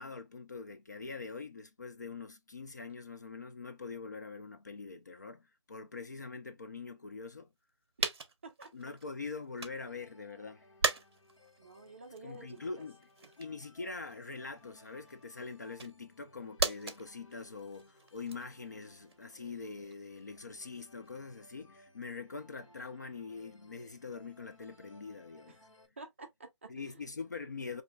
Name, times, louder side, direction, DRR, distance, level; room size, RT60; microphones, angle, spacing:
voice 1, 0.0-7.5 8.7-10.7 12.2-13.1 13.4-25.6 26.7-27.8, left 4 dB, 35° left, 0.4 m, -44 dB
sound 1, 7.5-7.6 8.0-9.9 10.3-21.4, right 4 dB, 55° right, 0.8 m, -40 dB
sound 2, 9.9-25.9, left 1 dB, 80° left, 1.3 m, -63 dB
voice 2, 11.6-12.8 13.2-13.3 25.5-25.6 26.0-27.0, right 3 dB, 25° right, 0.5 m, -51 dB
5.1 x 2.6 x 2.2 m
figure-of-eight pair, 170°, 16 cm